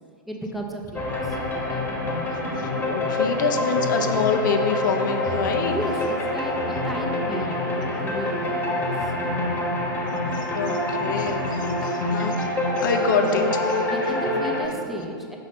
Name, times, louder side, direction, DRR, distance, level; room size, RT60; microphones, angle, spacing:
voice 1, 0.3-1.9 5.7-9.1 11.4-11.6 13.2-13.5 13.9-15.4, right 1 dB, ahead, 0 dB, 0.7 m, -35 dB
sound 1, 0.9-14.7, left 2 dB, 15° left, 1.2 m, -26 dB
voice 2, 2.6-5.7 10.3-12.5 12.8-13.9, left 5 dB, 60° left, 6 dB, 0.5 m, -26 dB
6.3 x 5.2 x 4.1 m, 2.3 s
figure-of-eight pair, 105°, 12 cm